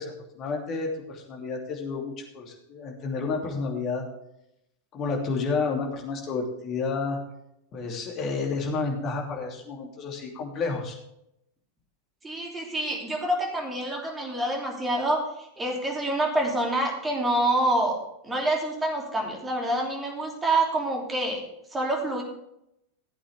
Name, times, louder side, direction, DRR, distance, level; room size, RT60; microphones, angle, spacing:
voice 1, 0.0-4.0 4.9-7.2 7.7-11.0, left 4 dB, 35° left, 0 dB, 2.9 m, -30 dB
voice 2, 12.2-18.0 18.2-21.4 21.7-22.2, right 1 dB, 15° right, 0 dB, 3.0 m, -27 dB
16.0 x 8.5 x 3.5 m, 0.80 s
figure-of-eight pair, 90°, 0 cm